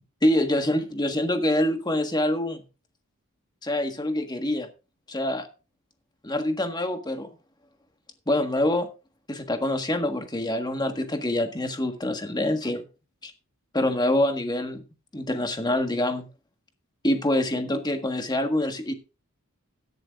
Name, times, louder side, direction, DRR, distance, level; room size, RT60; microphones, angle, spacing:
voice 1, 0.2-2.6 3.6-4.7 5.1-5.5 6.2-7.3 8.3-8.9 9.3-12.8 13.2-13.3 13.7-14.8 15.1-16.3 17.0-18.9, left 1 dB, 20° left, 1.5 m, -25 dB
16.0 x 11.0 x 2.5 m
head